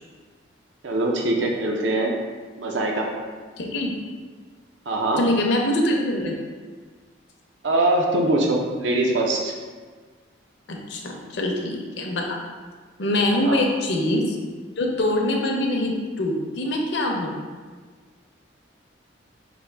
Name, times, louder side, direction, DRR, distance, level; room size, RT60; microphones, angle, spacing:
voice 1, 0.8-2.1 2.6-3.1 4.9-5.2 7.6-9.5 13.4-13.6, right 2 dB, 65° right, 0 dB, 0.5 m, -22 dB
voice 2, 3.6-3.9 5.2-6.3 10.9-12.4 13.0-14.4 14.8-17.4, left 1 dB, 60° left, 1 dB, 0.6 m, -24 dB
5.1 x 2.6 x 3.3 m, 1.5 s
head